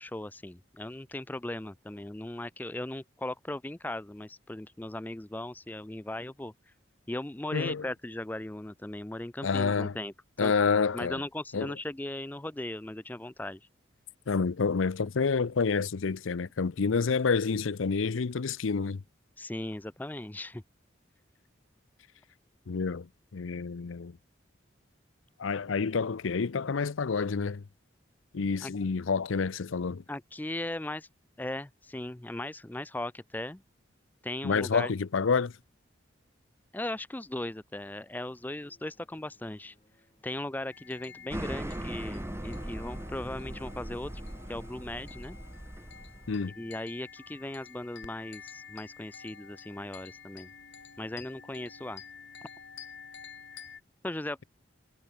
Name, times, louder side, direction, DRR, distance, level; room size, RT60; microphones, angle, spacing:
voice 1, 0.0-6.5 7.1-10.5 10.9-13.6 19.4-20.6 28.6-28.7 30.1-31.1 31.4-33.6 34.2-34.9 36.7-39.7 40.2-44.1 44.5-45.4 46.6-50.5 51.0-52.0 54.0-54.4, left 1 dB, 10° left, 0.4 m, -38 dB
voice 2, 7.5-7.8 9.4-10.0 10.4-11.2 11.5-11.7 14.3-19.0 22.7-24.2 25.4-27.6 28.3-30.0 34.4-35.5 46.3-46.5, left 5 dB, 85° left, 0.6 m, -28 dB
sound 1, 38.1-46.8, equal, 30° left, 4.8 m, -68 dB
sound 2, 40.7-53.8, left 6 dB, 65° left, 4.8 m, -50 dB
sound 3, 41.3-46.5, right 1 dB, 15° right, 0.8 m, -39 dB
head